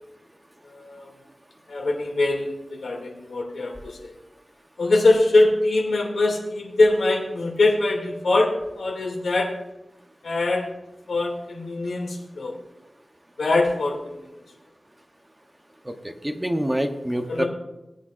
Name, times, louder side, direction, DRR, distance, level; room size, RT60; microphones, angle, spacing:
voice 1, 0.6-1.2 1.7-4.1 4.8-9.5 10.2-10.7 11.1-12.5 13.4-14.3 17.3-17.4, left 2 dB, 85° left, -1 dB, 2.4 m, -23 dB
voice 2, 15.8-17.4, right 1 dB, 15° right, 6 dB, 0.8 m, -26 dB
18.0 x 9.0 x 2.5 m, 0.94 s
wide cardioid pair, 115°, 0 cm